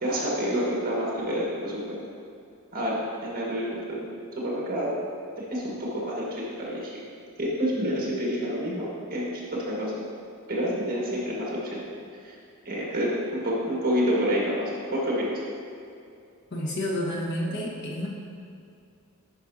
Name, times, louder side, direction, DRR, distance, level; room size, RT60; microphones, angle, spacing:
voice 1, 0.0-1.8 2.7-4.9 5.4-6.9 7.4-10.0 10.5-11.8 12.2-12.4 12.6-15.3, equal, 45° right, -5 dB, 1.6 m, -28 dB
voice 2, 16.5-18.1, left 1 dB, 55° left, -3 dB, 1.2 m, -30 dB
10.5 x 5.5 x 2.7 m, 2.5 s
head